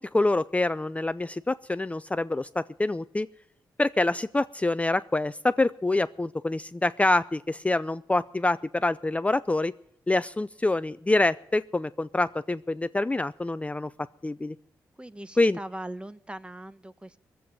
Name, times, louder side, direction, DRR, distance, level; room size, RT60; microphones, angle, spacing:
voice 1, 0.1-3.3 3.8-9.7 10.1-13.9 14.2-14.6 15.4-15.6, left 2 dB, 20° left, 14 dB, 0.5 m, -26 dB
voice 2, 15.0-17.2, right 1 dB, 15° right, 15 dB, 1.1 m, -40 dB
19.5 x 7.9 x 9.0 m, 0.70 s
supercardioid pair, 55°, 7 cm